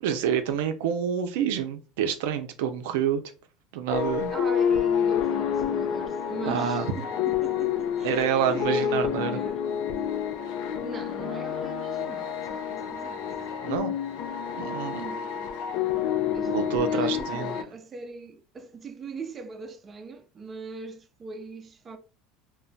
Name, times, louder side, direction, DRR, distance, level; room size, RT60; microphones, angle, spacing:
voice 1, 0.0-3.2 3.7-4.3 6.5-6.9 8.0-9.4 13.6-13.9 14.6-15.0 16.4-17.5, right 8 dB, 85° right, 0.4 m, -27 dB
sound 1, 3.9-17.6, left 8 dB, 70° left, 0.5 m, -28 dB
voice 2, 4.3-9.6 10.8-13.3 15.0-15.3 16.3-22.0, right 4 dB, 25° right, 0.4 m, -40 dB
2.1 x 2.1 x 3.8 m
supercardioid pair, 120°, 0 cm